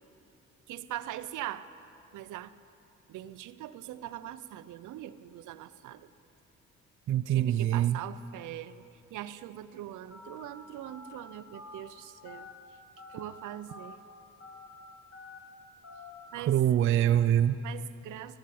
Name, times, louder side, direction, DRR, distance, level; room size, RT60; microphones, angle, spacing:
voice 1, 0.7-1.7 2.1-2.5 3.1-6.1 7.3-8.8 9.1-12.5 13.1-14.0 16.3-16.6 17.6-18.4, right 13 dB, 80° right, 13 dB, 0.6 m, -41 dB
voice 2, 7.1-8.0 16.4-17.6, right 11 dB, 45° right, 10 dB, 0.4 m, -24 dB
Telephone, 10.1-10.4 10.8-11.1 11.5-11.8 12.3-12.5 13.0-13.2 13.7-14.0 14.4-14.7 15.1-15.4 15.8-16.1, left 3 dB, 60° left, 3.8 m, -47 dB
17.0 x 9.0 x 8.4 m, 2.8 s
cardioid pair, 90°, 30 cm